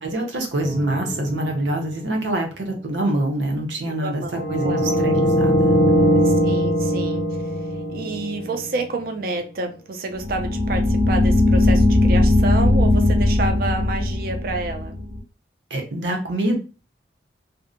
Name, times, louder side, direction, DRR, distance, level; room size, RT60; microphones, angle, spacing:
voice 1, 0.0-6.2 15.7-16.6, right 1 dB, 90° right, 2 dB, 0.7 m, -25 dB
sound 1, 0.6-2.1 4.3-8.8 10.2-15.2, left 1 dB, 50° left, 0.5 m, -20 dB
voice 2, 4.0-5.0 6.2-14.9, right 2 dB, 55° right, 5 dB, 0.4 m, -29 dB
2.6 x 2.1 x 2.5 m, 0.32 s
head